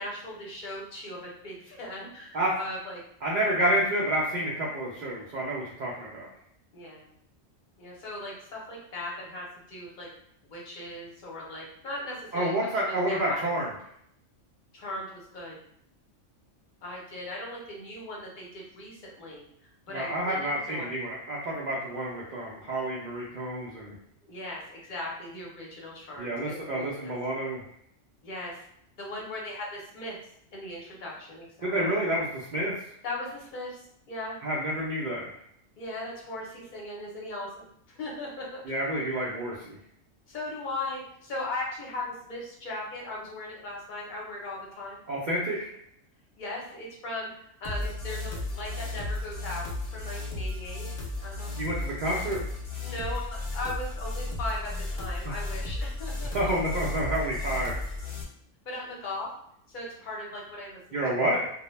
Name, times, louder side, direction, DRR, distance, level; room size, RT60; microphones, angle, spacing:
voice 1, 0.0-3.0 6.7-7.1 7.8-10.1 10.4-13.5 14.7-15.6 16.8-21.0 24.2-27.1 28.2-28.6 29.0-30.2 30.5-32.2 33.0-34.4 35.8-38.6 40.3-45.0 46.4-50.9 51.1-51.5 52.8-56.5 58.7-59.3 59.7-61.0, left 1 dB, 45° left, -3 dB, 0.7 m, -38 dB
voice 2, 3.2-6.3 12.3-13.7 19.9-23.9 26.2-27.6 31.6-32.7 34.4-35.3 38.7-39.8 45.1-45.7 51.6-52.4 55.3-55.4 56.3-57.7 60.9-61.5, right 1 dB, 75° right, -5 dB, 0.4 m, -29 dB
sound 1, 47.6-58.2, left 2 dB, 80° left, 0.3 m, -34 dB
2.1 x 2.0 x 3.0 m, 0.69 s
omnidirectional pair, 1.3 m